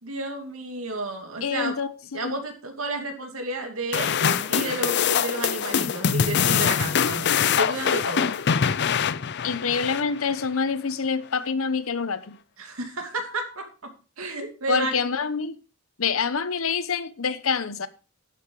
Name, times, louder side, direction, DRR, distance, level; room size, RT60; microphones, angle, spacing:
voice 1, 0.0-1.7 2.1-8.3 12.6-13.9 14.2-14.9, right 2 dB, 85° right, 2.6 m, -32 dB
voice 2, 1.4-2.4 9.4-12.4 14.7-15.6 16.0-17.9, left 5 dB, 80° left, 0.9 m, -26 dB
sound 1, 3.9-10.5, left 7 dB, 55° left, 0.5 m, -24 dB
11.0 x 7.6 x 4.7 m
head